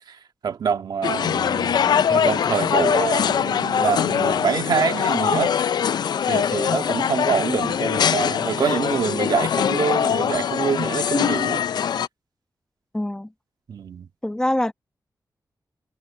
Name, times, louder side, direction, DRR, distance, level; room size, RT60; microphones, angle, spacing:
voice 1, 0.1-5.5 5.8-6.0 6.3-11.6 13.7-14.1, right 6 dB, 75° right, 1.7 m, -26 dB
sound 1, 1.0-12.1, left 8 dB, 75° left, 0.4 m, -22 dB
voice 2, 12.9-13.3 14.2-14.7, left 1 dB, 10° left, 1.1 m, -24 dB
wide cardioid pair, 170°, 7 cm